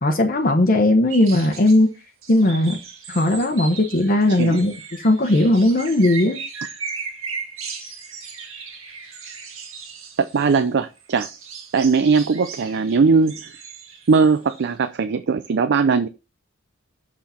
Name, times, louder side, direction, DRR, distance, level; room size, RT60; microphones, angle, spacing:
voice 1, 0.0-1.9 2.3-2.8 3.1-6.4, left 1 dB, 45° left, 1.0 m, -18 dB
sound 1, 1.1-1.8 2.2-10.6 11.0-14.7, right 5 dB, 85° right, 1.8 m, -37 dB
voice 2, 4.3-4.6 10.2-11.3 11.7-13.5 14.1-16.1, right 5 dB, 60° right, 0.5 m, -19 dB
6.5 x 5.9 x 4.2 m
head